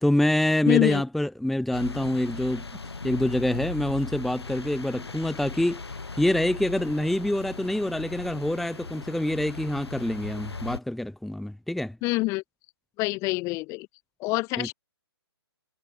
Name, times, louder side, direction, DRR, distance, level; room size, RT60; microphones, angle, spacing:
voice 1, 0.0-2.6 3.0-5.8 6.2-12.0 14.6-14.7, left 1 dB, ahead, 1.4 m, -26 dB
voice 2, 0.7-1.0 12.0-12.4 13.0-13.9 14.2-14.7, left 23 dB, 20° left, 2.0 m, -25 dB
sound 1, 1.7-10.8, left 4 dB, 75° left, 5.1 m, -38 dB
figure-of-eight pair, 135°, 14 cm